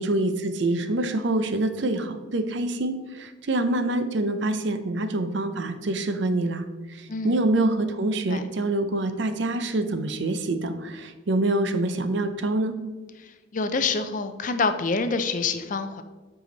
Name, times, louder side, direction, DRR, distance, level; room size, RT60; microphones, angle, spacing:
voice 1, 0.0-12.7, right 2 dB, 60° right, 9 dB, 0.6 m, -26 dB
voice 2, 13.5-16.0, left 4 dB, 40° left, 9 dB, 0.4 m, -26 dB
8.0 x 4.9 x 3.9 m, 1.3 s
head